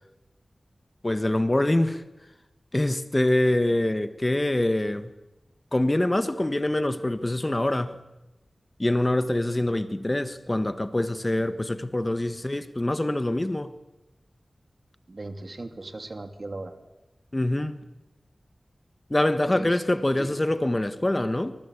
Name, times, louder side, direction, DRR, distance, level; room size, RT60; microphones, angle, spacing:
voice 1, 1.0-2.0 2.7-5.1 5.7-8.0 8.8-13.7 17.3-17.8 19.1-21.6, left 1 dB, 25° left, 1.4 m, -25 dB
voice 2, 15.1-16.7 19.5-19.8 20.2-20.4, right 2 dB, 50° right, 3.1 m, -37 dB
26.5 x 25.5 x 8.4 m
wide cardioid pair, 70°, 0 cm